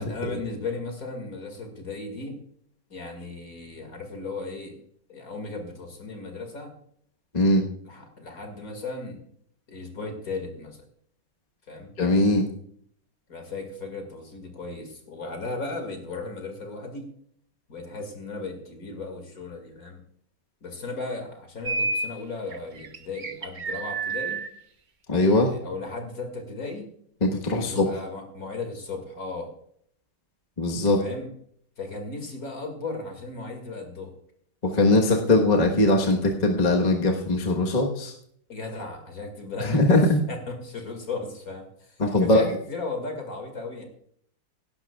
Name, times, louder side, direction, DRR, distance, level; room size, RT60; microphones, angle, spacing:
voice 1, 0.0-2.4 2.9-4.8 5.1-6.7 7.8-9.2 9.7-10.8 11.7-11.9 13.3-17.1 17.7-20.0 20.6-24.4 25.5-26.9 27.5-29.5 31.0-31.3 31.8-34.1 38.5-43.9, left 3 dB, 55° left, 4 dB, 2.6 m, -36 dB
voice 2, 7.3-7.7 12.0-12.5 25.1-25.5 27.2-27.9 30.6-31.0 34.6-38.1 39.6-40.2 42.0-42.4, left 2 dB, 25° left, 1 dB, 1.2 m, -21 dB
sound 1, 21.6-22.1 22.5-24.5, right 3 dB, 40° right, 0.7 m, -29 dB
17.5 x 11.5 x 2.4 m, 0.64 s
omnidirectional pair, 1.9 m